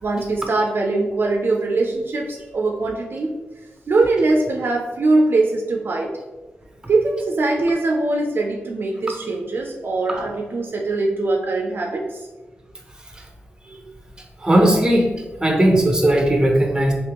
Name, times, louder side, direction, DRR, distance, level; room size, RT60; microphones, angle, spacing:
voice 1, 0.0-3.3 3.9-6.1 6.9-12.2, right 2 dB, 55° right, 1 dB, 0.4 m, -21 dB
voice 2, 14.4-15.1 15.4-16.9, right 1 dB, 15° right, 2 dB, 0.7 m, -17 dB
3.3 x 2.9 x 2.9 m, 1.2 s
wide cardioid pair, 85°, 4 cm